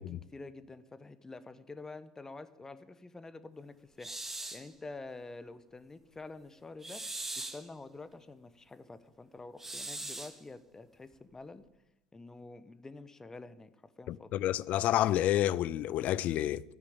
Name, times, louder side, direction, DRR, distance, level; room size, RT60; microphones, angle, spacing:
voice 1, 0.0-11.6 12.1-14.4, left 3 dB, 15° left, 1.1 m, -48 dB
sound 1, 4.0-4.7 6.8-7.7 9.6-10.4, right 2 dB, 10° right, 2.4 m, -40 dB
voice 2, 14.1-16.6, left 13 dB, 50° left, 0.5 m, -29 dB
13.5 x 9.6 x 8.8 m
figure-of-eight pair, 70°, 3 cm